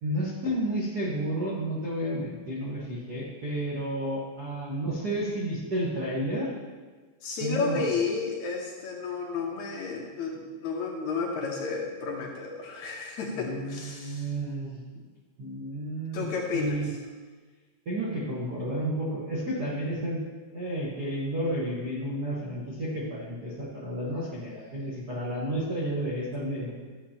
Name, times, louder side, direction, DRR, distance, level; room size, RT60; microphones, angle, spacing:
voice 1, 0.0-6.5 7.4-7.9 13.4-14.8 15.4-16.3 16.5-16.9 17.8-20.2 20.5-26.7, right 1 dB, 70° right, -6 dB, 0.9 m, -31 dB
voice 2, 7.2-14.3 16.1-16.8, left 4 dB, 70° left, -1 dB, 2.0 m, -32 dB
12.5 x 7.8 x 2.9 m, 1.4 s
omnidirectional pair, 4.0 m